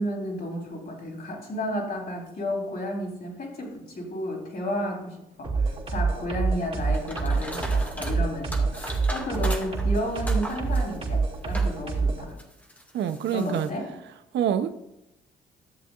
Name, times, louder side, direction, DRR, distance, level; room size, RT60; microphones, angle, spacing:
voice 1, 0.0-12.4 13.3-13.9, left 1 dB, 50° left, 3.8 m, -32 dB
sound 1, 5.4-12.3, right 4 dB, 30° right, 2.9 m, -26 dB
sound 2, 6.9-8.2 8.5-11.8 12.3-13.7, equal, 10° left, 1.9 m, -38 dB
voice 2, 12.9-13.7 14.3-14.9, right 9 dB, 70° right, 0.7 m, -26 dB
14.0 x 7.2 x 2.4 m
cardioid pair, 75°, 19 cm